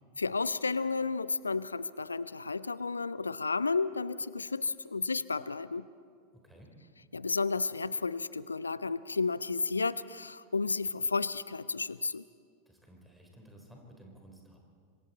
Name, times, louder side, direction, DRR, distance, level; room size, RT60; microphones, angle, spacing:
voice 1, 0.2-5.9 7.1-12.2, left 4 dB, 75° left, 18 dB, 0.5 m, -32 dB
voice 2, 6.3-6.7 12.7-14.6, right 1 dB, 5° right, 1 dB, 4.0 m, -54 dB
25.5 x 25.5 x 4.3 m, 2.2 s
figure-of-eight pair, 90°, 0 cm